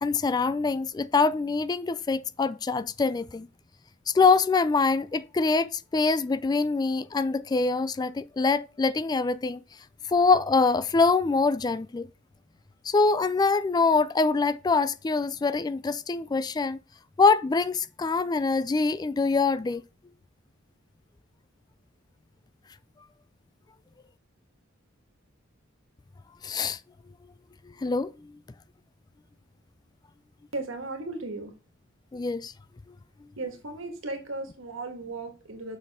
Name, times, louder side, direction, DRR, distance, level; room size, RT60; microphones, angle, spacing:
voice 1, 0.0-3.5 4.1-9.6 10.1-12.1 12.8-16.8 17.2-19.8 26.4-26.8 27.7-28.3 32.1-32.5, left 4 dB, 20° left, 0.3 m, -24 dB
voice 2, 30.5-31.5 33.4-35.8, right 2 dB, 80° right, 1.7 m, -36 dB
6.7 x 5.9 x 3.5 m
head